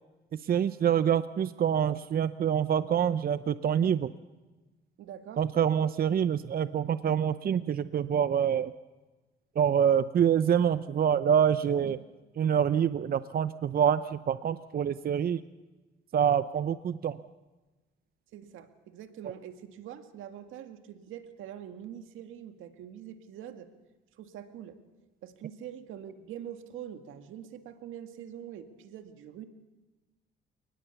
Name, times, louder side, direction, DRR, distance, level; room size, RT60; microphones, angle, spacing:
voice 1, 0.5-4.1 5.4-8.7 9.6-12.0 12.4-15.4 16.1-17.2, right 8 dB, 50° right, 13 dB, 0.7 m, -26 dB
voice 2, 5.0-5.4 11.8-12.0 18.3-23.7 24.2-24.8 25.2-29.4, right 10 dB, 85° right, 8 dB, 1.9 m, -44 dB
29.5 x 19.5 x 7.1 m, 1.2 s
cardioid pair, 90°, 20 cm